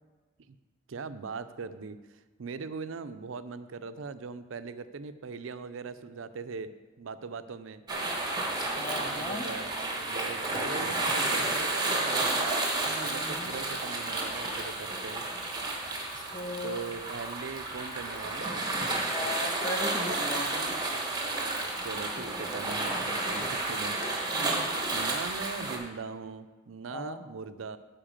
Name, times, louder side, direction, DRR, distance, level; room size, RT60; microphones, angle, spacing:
voice 1, 0.9-2.0 2.4-7.8 9.2-9.7 10.1-12.5 13.0-15.2 16.6-18.8 21.8-24.0 24.9-27.8, right 4 dB, 85° right, 11 dB, 0.5 m, -40 dB
sound 1, 7.9-25.8, right 2 dB, 20° right, 1.3 m, -31 dB
voice 2, 8.6-9.5 12.9-13.5 16.1-16.8 18.8-20.8 24.3-24.8 26.9-27.3, left 2 dB, 25° left, 2 dB, 1.1 m, -38 dB
10.0 x 4.6 x 7.4 m, 1.2 s
head